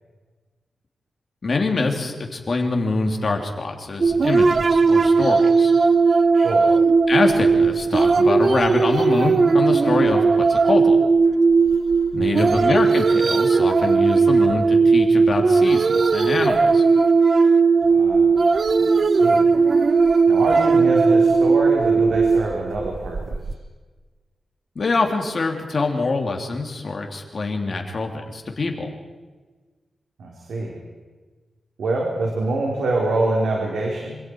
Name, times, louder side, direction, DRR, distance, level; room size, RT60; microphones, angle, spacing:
voice 1, 1.4-5.7 7.1-11.0 12.1-16.8 24.7-28.9, left 3 dB, 40° left, 3 dB, 3.3 m, -24 dB
sound 1, 4.0-23.5, right 4 dB, 40° right, 0.9 m, -17 dB
voice 2, 6.3-6.7 12.2-12.5 17.9-18.4 18.8-19.5 20.3-23.2 30.2-30.8 31.8-34.2, right 2 dB, 85° right, -2 dB, 4.1 m, -25 dB
27.5 x 26.5 x 4.8 m, 1.3 s
wide cardioid pair, 155°, 0 cm